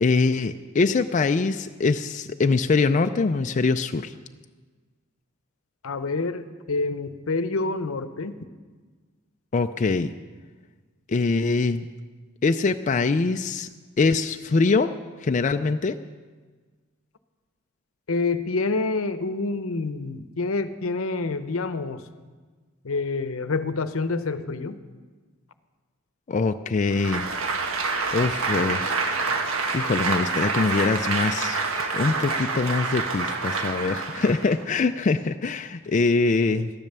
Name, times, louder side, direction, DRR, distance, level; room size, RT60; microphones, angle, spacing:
voice 1, 0.0-4.1 9.5-10.1 11.1-11.8 12.4-13.7 14.0-14.9 15.2-16.0 26.3-27.2 28.1-28.9 29.7-31.6 31.9-36.7, left 4 dB, 35° left, 8 dB, 0.4 m, -23 dB
voice 2, 5.8-8.4 18.1-22.0 22.8-24.8, left 3 dB, 85° left, 11 dB, 0.8 m, -27 dB
Applause, 26.9-34.6, right 4 dB, 85° right, 1.4 m, -27 dB
13.5 x 10.5 x 6.8 m, 1.4 s
head